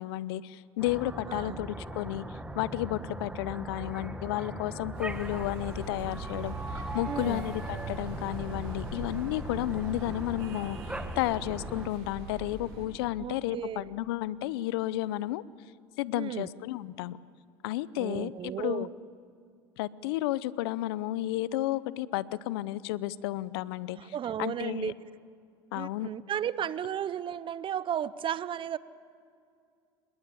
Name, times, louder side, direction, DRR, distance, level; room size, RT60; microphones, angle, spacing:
voice 1, 0.0-6.5 6.9-15.4 16.0-17.2 17.6-18.3 18.6-18.9 19.8-24.1 24.4-24.9 25.7-26.1, left 15 dB, 75° left, 19 dB, 0.7 m, -32 dB
sound 1, 0.8-11.9, right 1 dB, 10° right, 1.8 m, -39 dB
voice 2, 1.3-1.6 7.1-7.5 13.2-13.9 16.1-16.5 18.0-18.9 24.0-25.0 25.7-28.8, right 9 dB, 40° right, 18 dB, 0.8 m, -34 dB
sound 2, 4.9-12.9, right 3 dB, 75° right, 7.2 m, -42 dB
26.5 x 21.5 x 8.4 m, 2.4 s
hypercardioid pair, 80°, 13 cm